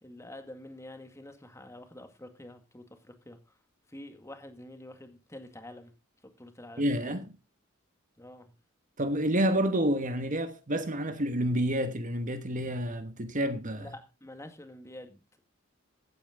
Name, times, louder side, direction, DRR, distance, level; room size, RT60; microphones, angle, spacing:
voice 1, 0.0-3.6 3.9-5.9 6.4-7.0 8.2-8.5 13.8-15.2, left 1 dB, 15° left, 2.0 m, -47 dB
voice 2, 6.8-7.3 9.0-13.9, right 1 dB, 40° right, 1.2 m, -29 dB
15.5 x 8.9 x 3.7 m
head